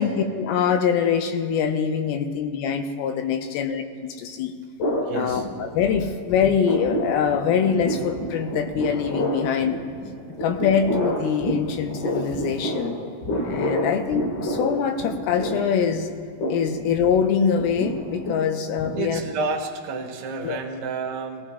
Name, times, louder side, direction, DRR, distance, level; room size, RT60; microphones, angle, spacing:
voice 1, 0.0-4.5 5.1-9.8 10.4-13.0 13.4-16.1 16.5-19.2 20.4-20.6, left 7 dB, 90° left, 6 dB, 2.7 m, -24 dB
sound 1, 4.8-6.0 6.3-19.5, equal, 65° left, 3.0 m, -29 dB
voice 2, 5.0-5.5 18.9-21.5, right 4 dB, 70° right, 1 dB, 1.2 m, -30 dB
20.0 x 16.0 x 2.3 m, 2.2 s
omnidirectional pair, 4.3 m